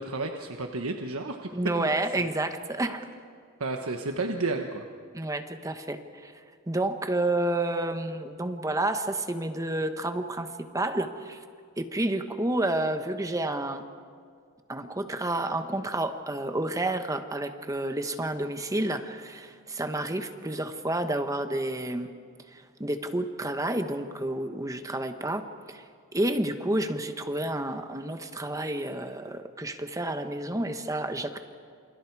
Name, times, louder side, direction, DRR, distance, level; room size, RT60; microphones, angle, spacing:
voice 1, 0.0-1.9 2.2-2.3 3.6-4.8, right 3 dB, 80° right, 4 dB, 1.3 m, -32 dB
voice 2, 1.5-3.0 5.1-6.3 6.7-11.4 11.8-13.8 14.7-22.1 22.5-25.8 26.1-31.4, right 1 dB, 15° right, 7 dB, 1.1 m, -30 dB
28.5 x 28.0 x 4.8 m, 2.3 s
head